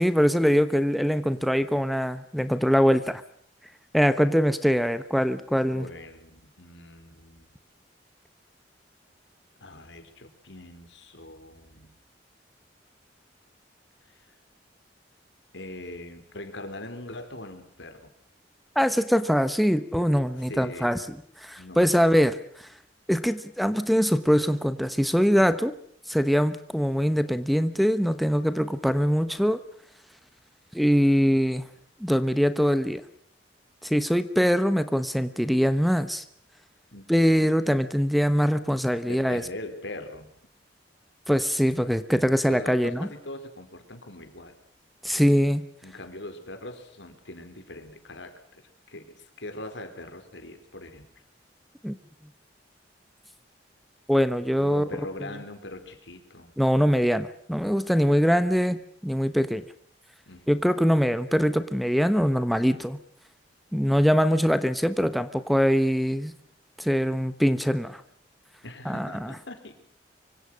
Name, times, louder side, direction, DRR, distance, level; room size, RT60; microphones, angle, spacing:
voice 1, 0.0-3.2 3.9-5.9 18.7-21.0 21.4-22.4 23.1-25.7 26.1-29.6 30.7-31.6 32.0-33.0 33.8-36.2 37.1-39.4 41.3-43.1 45.0-45.6 51.8-52.0 54.1-54.9 56.6-58.8 59.0-59.6 60.5-63.0 63.7-66.3 66.8-68.0 68.8-69.3, equal, ahead, 10 dB, 1.1 m, -23 dB
voice 2, 5.7-7.6 9.6-11.9 14.0-14.3 15.5-18.1 20.4-21.1 21.6-21.9 36.9-37.6 39.0-40.3 42.5-44.5 45.8-51.1 54.6-56.5 58.4-58.6 60.3-60.6 68.6-69.7, left 1 dB, 80° left, 7 dB, 4.4 m, -42 dB
25.0 x 25.0 x 6.4 m, 0.63 s
head